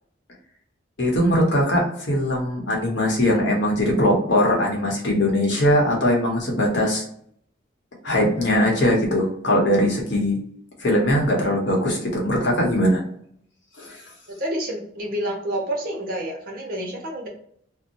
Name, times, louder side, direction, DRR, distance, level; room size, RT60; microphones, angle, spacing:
voice 1, 1.0-7.0 8.0-10.4 10.8-13.0 13.8-14.0, equal, 65° left, -1 dB, 0.9 m, -20 dB
voice 2, 14.4-17.3, right 1 dB, 45° right, -1 dB, 0.8 m, -28 dB
2.6 x 2.1 x 2.9 m, 0.64 s
head